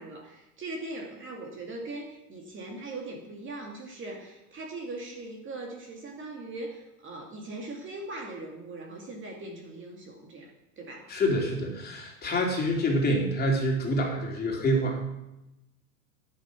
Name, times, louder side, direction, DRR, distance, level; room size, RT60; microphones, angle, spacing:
voice 1, 0.0-10.5 10.8-11.1, right 2 dB, 25° right, 1 dB, 2.3 m, -40 dB
voice 2, 11.1-15.0, equal, 20° left, -1 dB, 3.3 m, -26 dB
10.5 x 10.5 x 6.2 m, 0.92 s
hypercardioid pair, 110°, 46 cm